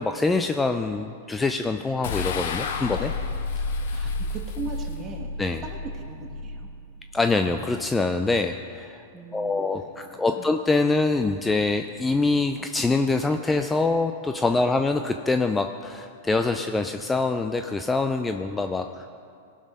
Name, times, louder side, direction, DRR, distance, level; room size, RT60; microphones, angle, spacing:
voice 1, 0.0-3.1 5.4-5.6 7.1-9.0 9.3-19.0, left 3 dB, 10° left, 6 dB, 0.5 m, -25 dB
sound 1, 2.0-7.4, left 4 dB, 70° left, 1.1 m, -31 dB
voice 2, 3.9-5.3 5.6-6.7 9.1-10.5 14.5-14.7, right 4 dB, 25° right, 1 dB, 1.9 m, -39 dB
18.0 x 6.3 x 5.3 m, 2.3 s
hypercardioid pair, 115°, 0 cm